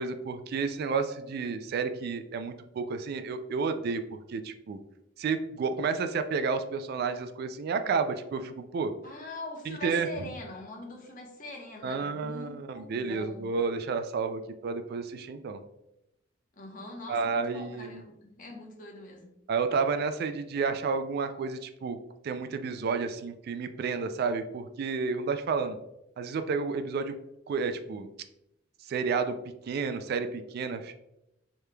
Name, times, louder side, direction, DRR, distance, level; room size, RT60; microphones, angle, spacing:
voice 1, 0.0-4.0 4.3-4.8 5.2-8.9 9.7-10.3 11.8-15.6 17.1-18.0 19.5-22.0 22.2-25.8 26.2-27.2 27.5-28.1 28.8-29.4 29.7-31.0, right 5 dB, 55° right, 9 dB, 0.3 m, -31 dB
voice 2, 9.0-13.5 16.5-19.3, left 2 dB, 45° left, 0 dB, 0.9 m, -43 dB
4.8 x 3.2 x 2.2 m, 0.86 s
head